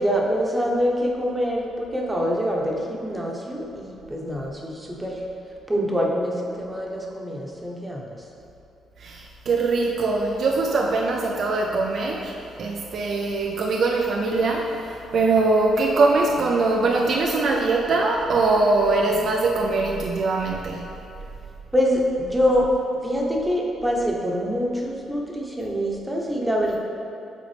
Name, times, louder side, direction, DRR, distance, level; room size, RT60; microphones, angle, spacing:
voice 1, 0.0-5.2 5.7-8.2 21.7-22.7 23.0-26.8, equal, 10° right, -2 dB, 0.9 m, -25 dB
voice 2, 9.0-21.0, right 3 dB, 60° right, 0 dB, 0.4 m, -22 dB
7.3 x 3.9 x 3.3 m, 2.8 s
cardioid pair, 90°, 0 cm